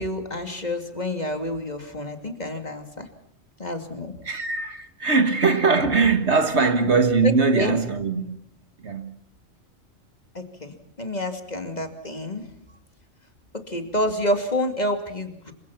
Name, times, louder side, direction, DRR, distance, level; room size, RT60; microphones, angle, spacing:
voice 1, 0.0-3.1 3.6-4.1 7.5-7.8 10.3-12.4 13.7-15.5, left 1 dB, 35° left, 2.7 m, -28 dB
voice 2, 4.2-8.4 8.8-9.1, right 4 dB, 60° right, 1.9 m, -21 dB
27.5 x 24.0 x 5.9 m
omnidirectional pair, 1.3 m